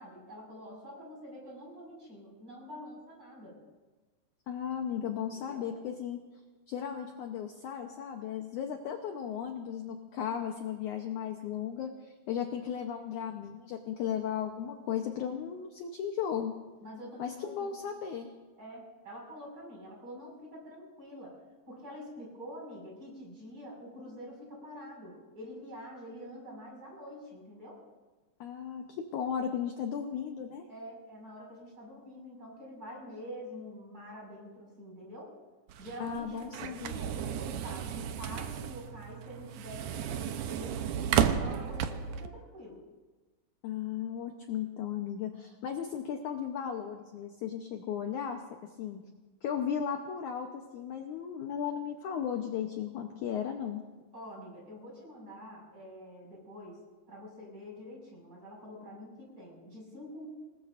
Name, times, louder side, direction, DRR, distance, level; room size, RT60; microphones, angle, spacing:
voice 1, 0.0-3.6 5.3-5.7 16.8-17.8 18.6-21.4 21.7-27.8 30.7-35.3 35.8-40.8 41.2-42.8 54.1-56.8 57.1-60.3, equal, 20° right, -3 dB, 6.0 m, -46 dB
voice 2, 4.5-6.2 6.7-16.6 17.2-18.3 28.4-30.6 36.0-36.9 43.6-48.4 48.8-49.0 49.4-53.8, left 8 dB, 75° left, 4 dB, 1.8 m, -35 dB
sound 1, 35.7-42.3, right 8 dB, 80° right, 1.9 m, -33 dB
27.0 x 19.5 x 2.6 m, 1.3 s
omnidirectional pair, 4.6 m